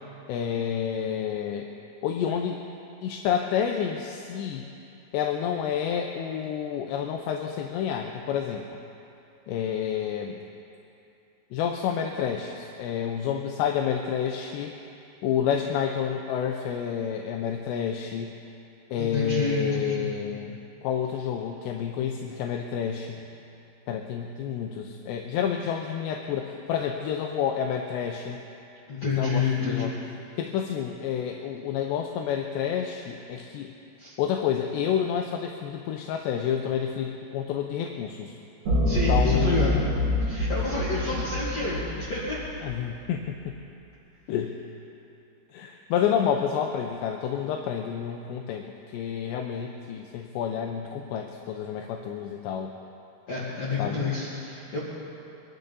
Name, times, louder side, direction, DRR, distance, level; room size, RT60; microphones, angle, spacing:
voice 1, 0.3-1.7 2.0-2.6 3.0-4.7 5.1-8.7 9.5-10.4 11.5-14.7 15.2-18.3 18.9-23.2 23.9-28.4 29.2-30.0 30.4-33.7 34.2-38.4 38.9-39.8 42.6-43.6 44.3-44.6 45.5-48.7 48.9-52.7 53.8-54.0, left 8 dB, 80° left, 3 dB, 2.7 m, -29 dB
voice 2, 19.0-20.1 28.9-29.9 34.0-34.1 38.8-39.8 40.2-42.4 53.3-54.8, left 3 dB, 45° left, -9 dB, 2.5 m, -29 dB
sound 1, 38.7-43.0, left 1 dB, 45° right, 3.3 m, -26 dB
24.0 x 12.0 x 4.1 m, 2.7 s
omnidirectional pair, 5.5 m